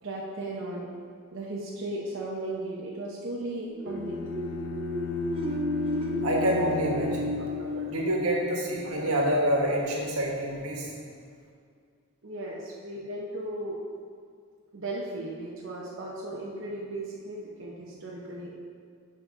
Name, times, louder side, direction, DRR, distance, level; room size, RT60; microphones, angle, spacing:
voice 1, 0.0-0.9 1.3-4.2 12.2-13.8 14.7-18.5, right 1 dB, 60° right, -4 dB, 0.8 m, -36 dB
sound 1, 3.7-9.4, left 1 dB, 25° right, 0.6 m, -33 dB
sound 2, 3.9-8.2, left 6 dB, 55° left, 0.4 m, -38 dB
voice 2, 6.2-10.9, right 1 dB, 90° right, -2 dB, 1.4 m, -27 dB
10.0 x 5.0 x 3.7 m, 2.2 s
head